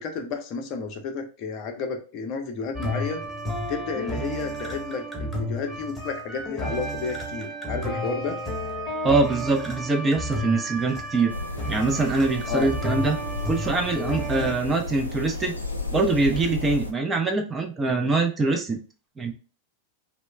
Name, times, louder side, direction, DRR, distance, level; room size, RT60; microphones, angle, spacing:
voice 1, 0.0-3.2 3.7-8.4 12.5-12.7, left 5 dB, 40° left, 4 dB, 0.5 m, -31 dB
sound 1, 2.7-14.5, equal, 5° left, 0.8 m, -32 dB
voice 2, 9.0-11.3 11.7-13.2 13.5-15.5 15.9-18.8 19.2-19.3, right 3 dB, 15° right, 4 dB, 0.4 m, -23 dB
sound 2, 11.3-16.9, left 2 dB, 85° left, 0.4 m, -33 dB
3.0 x 2.0 x 3.1 m, 0.37 s
figure-of-eight pair, 90°, 0 cm